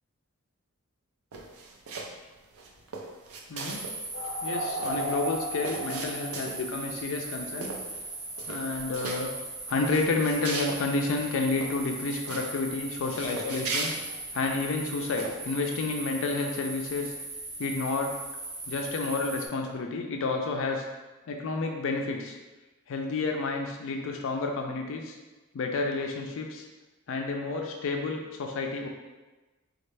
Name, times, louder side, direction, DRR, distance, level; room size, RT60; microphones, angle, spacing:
sound 1, 1.3-2.2 2.5-4.0 4.2-4.3 4.6-6.8 7.2-7.4 7.6-8.1 8.3-9.2 9.7-10.8 11.2-11.3 11.6-12.5 13.0-14.7 15.2-15.4, right 3 dB, 90° right, 0.6 m, -38 dB
voice 1, 3.5-3.9 4.4-7.7 8.5-9.3 9.7-13.9 14.3-17.1 17.6-18.1 18.7-20.8 21.3-22.4 22.9-25.2 25.5-26.7 27.1-28.9, left 3 dB, 65° left, 2 dB, 0.4 m, -30 dB
sound 2, 3.7-19.5, right 2 dB, 60° right, 0.9 m, -37 dB
4.2 x 2.3 x 3.2 m, 1.2 s
head